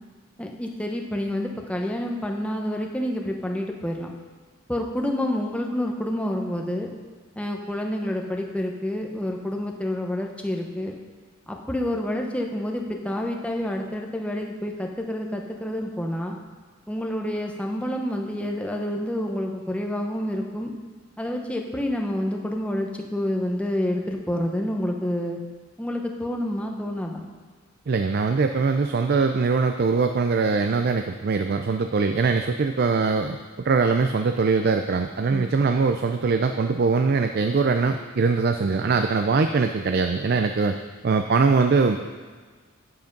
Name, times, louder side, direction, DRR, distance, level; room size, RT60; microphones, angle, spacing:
voice 1, 0.4-4.1 4.7-6.9 7.4-11.0 11.5-16.4 16.9-20.7 21.2-25.4 25.8-27.3 35.3-35.5, left 1 dB, 5° left, 1 dB, 0.8 m, -28 dB
voice 2, 27.9-33.4 33.6-40.8 41.0-42.1, right 4 dB, 50° right, 7 dB, 0.4 m, -22 dB
9.6 x 7.8 x 5.2 m, 1.5 s
head